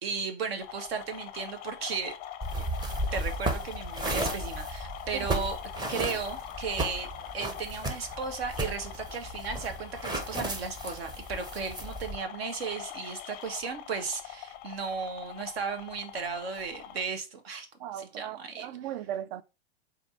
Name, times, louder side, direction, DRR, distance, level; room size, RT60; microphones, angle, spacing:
voice 1, 0.0-2.1 2.5-2.7 3.1-5.6 5.9-7.1 7.3-17.7 17.9-18.7, right 5 dB, 70° right, 1.1 m, -35 dB
sound 1, 0.6-17.0, left 10 dB, 30° left, 0.5 m, -43 dB
sound 2, 2.4-12.2, right 1 dB, 15° right, 0.7 m, -34 dB
voice 2, 17.8-19.4, right 11 dB, 50° right, 0.5 m, -37 dB
4.3 x 2.7 x 4.0 m
hypercardioid pair, 105°, 31 cm